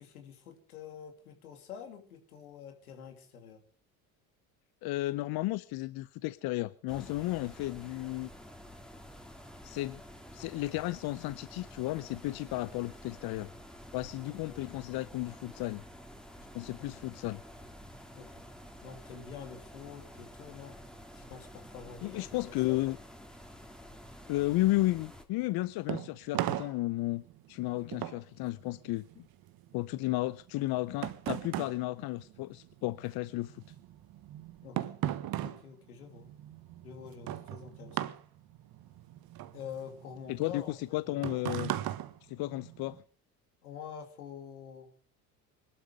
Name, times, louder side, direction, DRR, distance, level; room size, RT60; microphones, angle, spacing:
voice 1, 0.0-3.6 16.8-16.9 18.1-18.4 18.8-20.8 21.1-22.8 34.6-35.0 35.4-36.3 36.8-38.1 39.5-41.2 43.6-44.9, left 7 dB, 90° left, 6 dB, 3.0 m, -47 dB
voice 2, 4.8-8.3 9.6-10.0 10.3-13.5 13.9-15.8 16.5-17.4 22.0-23.0 24.3-27.2 27.5-29.3 29.7-33.6 40.3-41.7 42.2-43.0, left 18 dB, 60° left, 16 dB, 0.8 m, -33 dB
sound 1, 6.9-25.2, equal, ahead, 3.0 m, -50 dB
sound 2, 25.4-33.0 33.3-43.0, right 13 dB, 55° right, 1.3 m, -38 dB
21.5 x 12.5 x 5.0 m, 0.44 s
hypercardioid pair, 70°, 43 cm